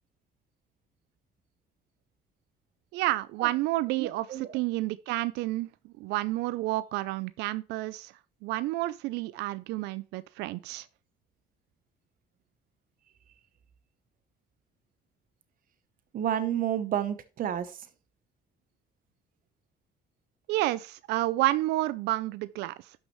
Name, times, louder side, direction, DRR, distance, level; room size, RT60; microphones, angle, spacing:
voice 1, 2.9-8.1 8.4-10.9 20.5-22.7, right 17 dB, 90° right, 0.4 m, -30 dB
voice 2, 4.0-4.5 16.1-17.7, right 10 dB, 55° right, 1.0 m, -30 dB
12.0 x 6.0 x 3.1 m
cardioid pair, 110°, 17 cm